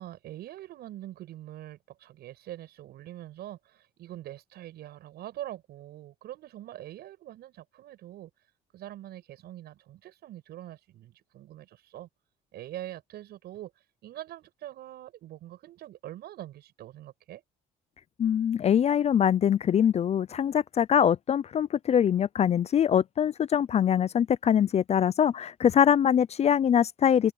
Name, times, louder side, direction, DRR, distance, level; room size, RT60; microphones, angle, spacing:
voice 1, 0.0-8.3 8.7-12.1 12.5-13.7 14.0-17.4, right 13 dB, 70° right, 7.3 m, -43 dB
voice 2, 18.2-27.3, left 9 dB, 40° left, 0.5 m, -23 dB
cardioid pair, 110°, 17 cm